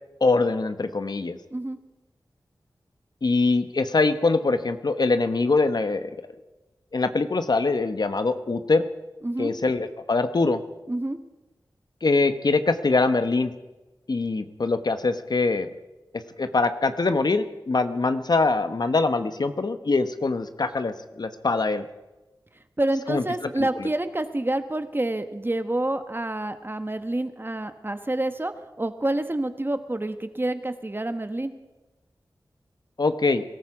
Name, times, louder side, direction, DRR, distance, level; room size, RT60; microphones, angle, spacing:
voice 1, 0.2-1.4 3.2-6.1 6.9-8.8 9.4-10.6 12.0-13.5 14.1-15.7 16.4-21.8 23.1-23.2 23.6-23.9 33.0-33.4, left 3 dB, 60° left, 10 dB, 1.1 m, -23 dB
voice 2, 22.8-28.5 28.8-31.5, right 1 dB, 25° right, 9 dB, 1.3 m, -28 dB
22.0 x 13.5 x 4.9 m, 1.1 s
cardioid pair, 45°, 8 cm